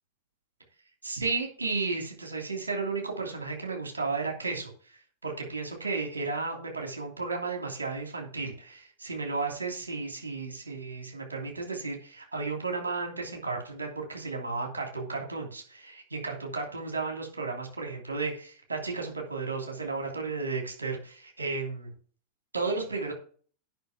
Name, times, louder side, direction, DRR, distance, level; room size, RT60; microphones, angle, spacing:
voice 1, 1.0-21.9 22.5-23.1, right 4 dB, 75° right, 2 dB, 2.9 m, -33 dB
9.3 x 5.9 x 6.0 m, 0.44 s
figure-of-eight pair, 90°, 0 cm